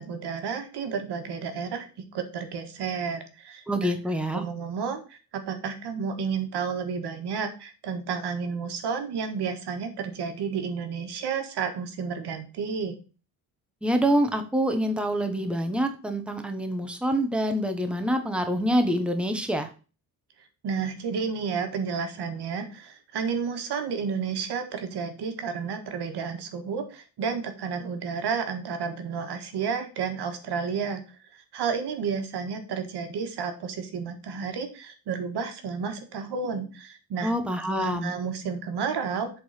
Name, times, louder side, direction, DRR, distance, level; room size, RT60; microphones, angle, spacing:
voice 1, 0.0-1.9 2.1-3.9 4.3-13.0 20.6-37.3 37.8-39.3, right 6 dB, 85° right, 6 dB, 1.7 m, -31 dB
voice 2, 3.7-4.4 13.8-19.7 37.2-38.1, equal, 5° right, 6 dB, 1.2 m, -26 dB
7.9 x 3.9 x 6.4 m, 0.34 s
cardioid pair, 125°, 39 cm